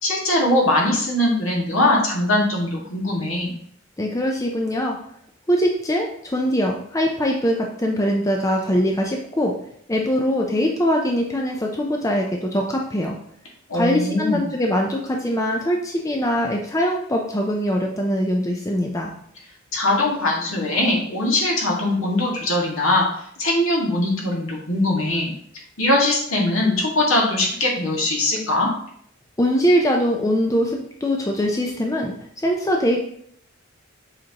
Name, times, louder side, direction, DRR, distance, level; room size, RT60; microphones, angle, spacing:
voice 1, 0.0-3.5 13.7-14.4 19.7-25.3 25.8-28.7, left 1 dB, 70° left, -2 dB, 1.8 m, -21 dB
voice 2, 4.0-5.0 5.5-9.5 9.9-13.2 13.7-19.1 29.4-33.0, equal, 15° left, 0 dB, 0.5 m, -22 dB
7.5 x 4.4 x 2.9 m, 0.64 s
head